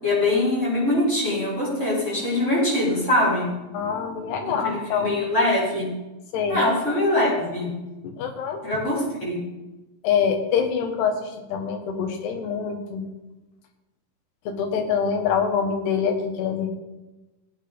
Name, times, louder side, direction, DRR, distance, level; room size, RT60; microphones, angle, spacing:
voice 1, 0.0-3.5 4.5-4.8 5.0-5.9 6.5-7.7 8.6-9.4, left 1 dB, 15° left, -7 dB, 5.1 m, -23 dB
voice 2, 3.7-5.2 6.3-6.6 8.2-8.6 10.0-13.0 14.5-16.7, left 6 dB, 80° left, 4 dB, 3.5 m, -25 dB
17.5 x 8.8 x 3.9 m, 1.1 s
omnidirectional pair, 4.7 m